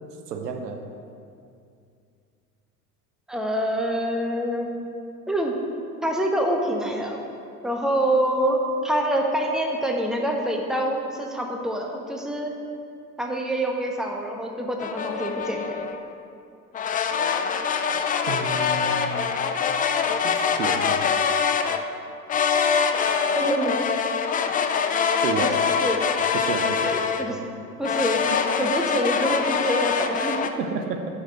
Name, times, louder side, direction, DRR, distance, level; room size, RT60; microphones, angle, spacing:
voice 1, 0.3-0.8 18.3-19.3 20.2-21.0 25.2-25.7 26.3-26.9 27.3-27.5 28.3-28.7 30.5-31.1, right 5 dB, 85° right, 5 dB, 0.8 m, -31 dB
voice 2, 3.3-4.7 5.3-5.5 6.0-7.2 7.6-12.5 13.2-15.8 23.3-23.7 25.4-25.5 25.8-26.0 26.8-27.4 27.8-30.4, right 1 dB, ahead, 1 dB, 1.1 m, -26 dB
sound 1, 14.8-16.0 16.7-21.8 22.3-27.4 27.8-30.5, left 6 dB, 20° left, 0.3 m, -24 dB
7.0 x 5.3 x 6.6 m, 2.4 s
hypercardioid pair, 65°, 47 cm